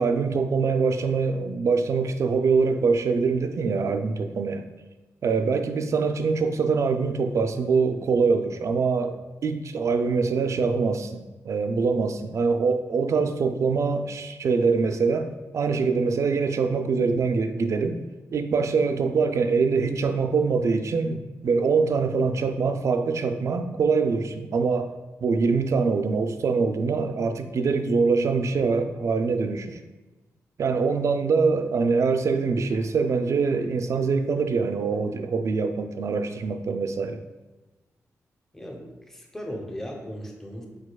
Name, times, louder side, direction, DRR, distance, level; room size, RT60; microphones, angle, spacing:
voice 1, 0.0-4.6 5.2-18.0 18.3-24.9 25.2-29.8 30.6-37.2, right 4 dB, 60° right, 8 dB, 0.4 m, -24 dB
voice 2, 38.5-40.7, equal, 5° left, 0 dB, 0.7 m, -37 dB
5.0 x 4.0 x 2.3 m, 1.1 s
wide cardioid pair, 100°, 6 cm